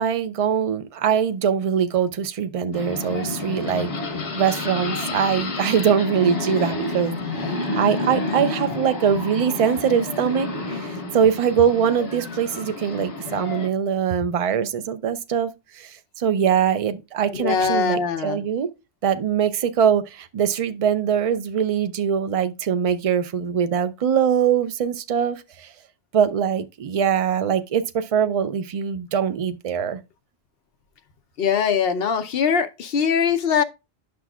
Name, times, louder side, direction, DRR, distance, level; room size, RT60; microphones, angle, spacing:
voice 1, 0.0-3.9 4.3-7.1 7.7-18.7 19.0-25.7 26.1-30.0, right 8 dB, 50° right, 0.4 m, -22 dB
sound 1, 2.7-13.7, left 3 dB, 90° left, 1.4 m, -29 dB
voice 2, 17.3-18.4 31.4-33.6, left 6 dB, 60° left, 0.9 m, -22 dB
10.0 x 6.2 x 2.3 m
omnidirectional pair, 1.1 m